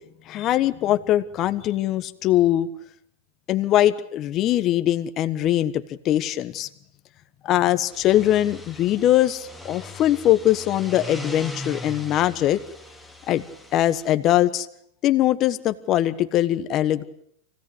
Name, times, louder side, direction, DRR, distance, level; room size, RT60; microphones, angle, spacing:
voice 1, 0.3-2.7 3.5-6.7 7.4-12.6 13.3-13.4 13.7-14.7 15.0-17.0, left 13 dB, 40° left, 11 dB, 1.3 m, -21 dB
sound 1, 7.8-14.1, equal, ahead, 2.2 m, -40 dB
25.0 x 17.0 x 8.0 m, 0.72 s
supercardioid pair, 130°, 0 cm